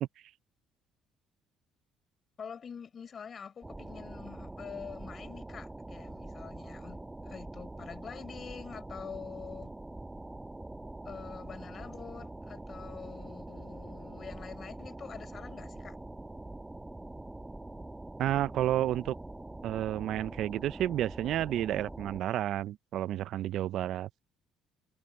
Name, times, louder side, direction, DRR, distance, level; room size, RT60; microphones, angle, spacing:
voice 1, 2.4-9.7 11.0-16.0, left 6 dB, 40° left, 4.8 m, -46 dB
sound 1, 3.6-22.2, right 2 dB, 10° right, 1.1 m, -44 dB
voice 2, 18.2-19.2 19.6-24.1, right 12 dB, 65° right, 0.4 m, -31 dB
cardioid pair, 90°, 0 cm